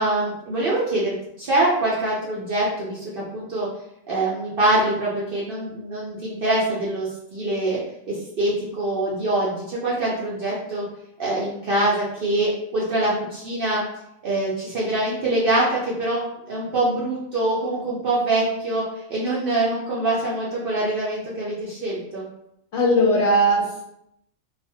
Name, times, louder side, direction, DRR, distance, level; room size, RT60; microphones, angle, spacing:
voice 1, 0.0-3.7 4.1-7.8 8.1-10.8 11.2-13.8 14.2-16.2 16.5-18.8 19.1-22.3, right 2 dB, 60° right, -7 dB, 0.6 m, -24 dB
voice 2, 22.7-23.8, equal, 65° left, -3 dB, 0.7 m, -19 dB
2.3 x 2.1 x 2.6 m, 0.78 s
omnidirectional pair, 1.4 m